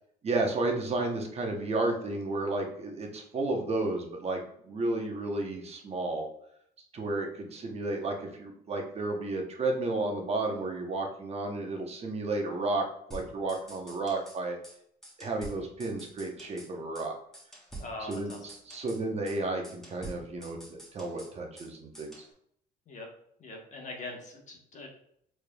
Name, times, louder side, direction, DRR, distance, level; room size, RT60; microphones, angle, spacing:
voice 1, 0.2-6.3 6.9-12.8 13.1-14.6 15.2-17.1 18.1-22.1, right 2 dB, 40° right, 2 dB, 0.9 m, -32 dB
sound 1, 13.1-14.4 14.6-14.8 15.0-16.7 17.0-17.1 17.3-19.0 19.3-19.4 19.6-21.7 21.9-22.3, right 2 dB, 5° left, 1.1 m, -47 dB
voice 2, 17.8-18.5 22.9-23.1 23.4-24.9, left 2 dB, 45° left, 1 dB, 1.0 m, -42 dB
4.4 x 3.3 x 2.3 m, 0.68 s
cardioid pair, 110°, 17 cm